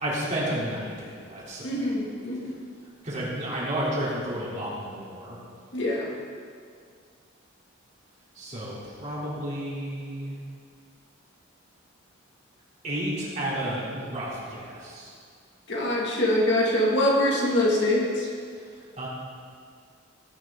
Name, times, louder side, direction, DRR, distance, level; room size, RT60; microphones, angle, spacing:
voice 1, 0.0-1.9 3.0-5.4 8.4-10.4 12.8-15.1 18.6-19.1, right 1 dB, 35° right, -7 dB, 3.6 m, -32 dB
voice 2, 1.6-2.4 5.7-6.1 15.7-18.3, left 1 dB, 55° left, -4 dB, 2.5 m, -24 dB
18.0 x 9.2 x 4.0 m, 2.1 s
head